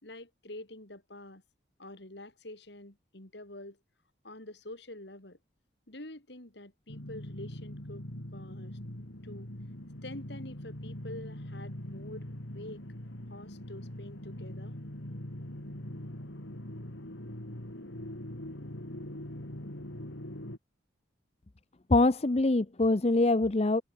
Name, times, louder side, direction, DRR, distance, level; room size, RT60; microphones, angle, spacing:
voice 1, 0.0-1.4 1.8-3.8 4.2-5.4 5.9-8.1 8.3-8.8 9.2-9.5 10.0-12.3 12.5-12.8 13.3-14.8, left 1 dB, 60° left, 3.7 m, -46 dB
sound 1, 6.9-20.6, left 1 dB, 75° left, 3.9 m, -42 dB
voice 2, 21.9-23.8, left 2 dB, 30° left, 0.7 m, -24 dB
head